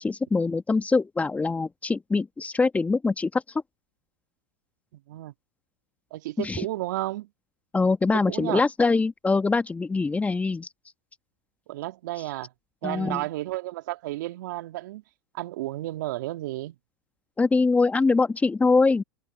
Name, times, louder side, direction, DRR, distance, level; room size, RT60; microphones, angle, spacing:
voice 1, 0.0-3.4 6.4-6.6 7.7-10.7 12.8-13.2 17.4-19.0, left 3 dB, 15° left, 1.7 m, -23 dB
voice 2, 4.9-5.3 6.1-7.3 8.2-8.6 11.7-12.5 12.8-15.0 15.3-16.8, right 17 dB, 65° right, 3.1 m, -32 dB
hypercardioid pair, 95°, 11 cm